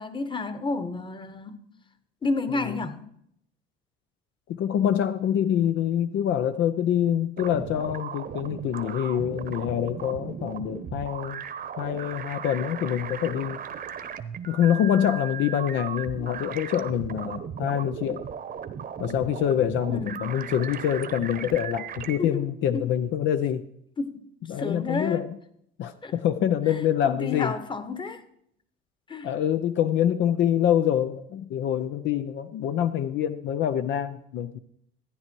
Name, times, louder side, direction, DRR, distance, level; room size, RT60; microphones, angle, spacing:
voice 1, 0.0-1.6 2.2-3.0 19.9-20.2 22.2-22.4 22.7-22.9 24.0-24.1 24.6-25.2 26.0-26.1 26.7-28.2 29.1-29.3, left 3 dB, 25° left, 1.2 m, -30 dB
voice 2, 4.5-11.4 11.8-13.6 14.5-18.2 19.0-23.7 24.5-25.4 25.8-27.5 29.2-34.6, left 10 dB, 65° left, 0.7 m, -25 dB
sound 1, 7.4-22.2, right 7 dB, 45° right, 1.0 m, -37 dB
14.0 x 9.7 x 4.6 m
supercardioid pair, 95°, 21 cm